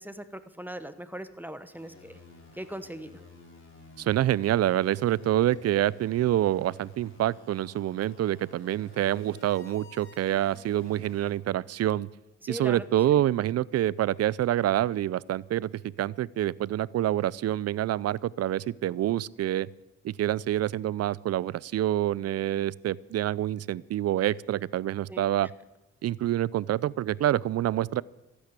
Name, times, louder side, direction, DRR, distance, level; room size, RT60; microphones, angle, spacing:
voice 1, 0.0-2.2 2.5-3.2 12.4-12.8 25.1-25.3, right 1 dB, 5° right, 12 dB, 1.0 m, -40 dB
sound 1, 1.7-11.3, left 2 dB, 40° left, 5.7 m, -53 dB
voice 2, 4.0-12.1 12.5-15.7 16.0-19.7 20.0-25.5 26.0-28.0, right 13 dB, 55° right, 23 dB, 0.5 m, -27 dB
14.5 x 9.8 x 8.3 m, 1.0 s
cardioid pair, 90°, 30 cm